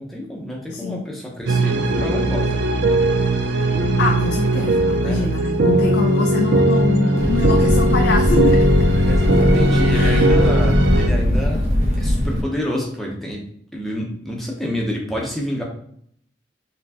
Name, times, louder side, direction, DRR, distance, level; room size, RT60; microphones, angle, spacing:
voice 1, 0.0-2.6 5.0-5.2 9.0-11.6 12.0-13.4 13.7-15.6, left 1 dB, ahead, -2 dB, 0.7 m, -28 dB
voice 2, 0.7-1.1 4.0-8.7 9.9-10.3, left 2 dB, 65° left, 2 dB, 0.4 m, -24 dB
sound 1, 1.5-11.1, right 1 dB, 70° right, 0.5 m, -18 dB
Fire, 7.1-12.4, left 1 dB, 35° right, 1.2 m, -19 dB
4.3 x 3.2 x 2.8 m, 0.66 s
head